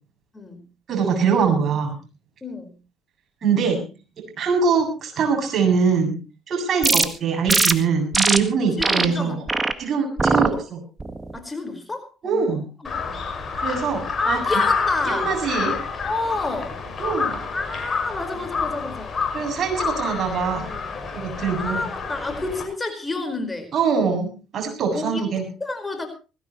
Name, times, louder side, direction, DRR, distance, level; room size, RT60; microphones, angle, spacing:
voice 1, 0.3-0.6 2.4-2.7 8.8-9.4 11.3-13.2 14.2-15.3 16.0-16.8 17.5-19.2 21.6-23.7 24.9-26.1, left 2 dB, 20° left, 7 dB, 4.9 m, -30 dB
voice 2, 0.9-2.0 3.4-3.8 4.4-6.2 6.5-9.4 9.8-10.8 12.2-12.6 13.6-14.4 15.1-15.7 17.0-17.4 19.3-20.6 21.1-21.8 23.7-25.4, right 5 dB, 50° right, 3 dB, 7.6 m, -23 dB
sound 1, 6.8-7.1 7.5-7.7 8.1-8.4 8.8-9.1 9.5-9.7 10.2-10.5 11.0-11.4, right 3 dB, 25° right, 1.8 m, -20 dB
Crow, 12.8-22.6, left 5 dB, 35° left, 6.7 m, -28 dB
20.0 x 17.0 x 3.1 m, 0.33 s
hypercardioid pair, 60°, 0 cm